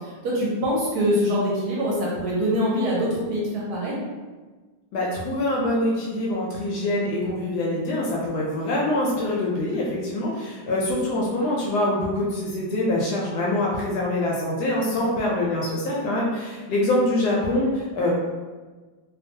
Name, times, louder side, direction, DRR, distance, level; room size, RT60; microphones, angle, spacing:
voice 1, 0.2-4.0, equal, 70° right, -5 dB, 1.1 m, -24 dB
voice 2, 4.9-18.1, left 1 dB, 75° left, -4 dB, 1.0 m, -24 dB
2.9 x 2.2 x 2.6 m, 1.3 s
omnidirectional pair, 2.0 m